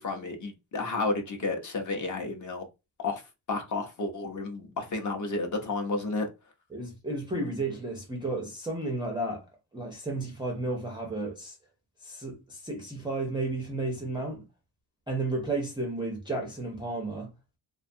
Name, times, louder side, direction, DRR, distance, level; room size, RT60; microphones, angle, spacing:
voice 1, 0.0-2.6 3.0-3.2 3.5-6.3, left 3 dB, 40° left, 0.6 m, -31 dB
voice 2, 6.7-9.5 9.7-11.6 12.0-14.4 15.1-17.3, right 2 dB, 10° right, 0.3 m, -33 dB
2.6 x 2.2 x 2.6 m
cardioid pair, 145°, 48 cm